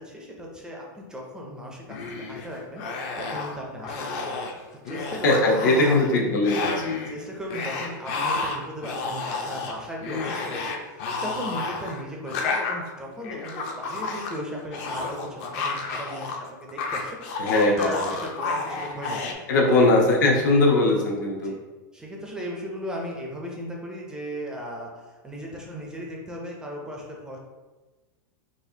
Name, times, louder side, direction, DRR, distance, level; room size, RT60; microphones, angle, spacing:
voice 1, 0.0-2.8 3.2-4.4 4.9-6.3 7.1-19.3 19.6-19.8 20.2-20.4 21.4-21.6 21.9-27.4, equal, 5° right, -1 dB, 0.4 m, -36 dB
sound 1, 1.9-2.5 2.8-3.6 3.8-4.5 4.8-6.1 6.4-7.1 7.5-16.4 16.6-19.3, left 4 dB, 45° left, 0.5 m, -31 dB
voice 2, 5.2-6.9 17.4-17.9 19.5-21.5, left 2 dB, 75° left, 0 dB, 0.8 m, -20 dB
4.1 x 2.4 x 2.7 m, 1.2 s
supercardioid pair, 160°, 10 cm